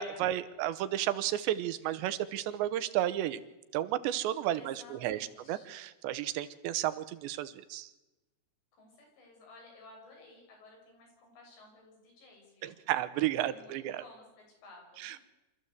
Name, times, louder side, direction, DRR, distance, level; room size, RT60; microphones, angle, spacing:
voice 1, 0.0-3.4 3.7-7.9 12.6-14.0 15.0-15.2, right 12 dB, 90° right, 13 dB, 3.3 m, -32 dB
voice 2, 4.5-5.7 8.7-12.8 13.4-15.2, left 2 dB, 80° left, 0 dB, 8.8 m, -56 dB
26.0 x 14.5 x 8.2 m, 1.1 s
omnidirectional pair, 5.0 m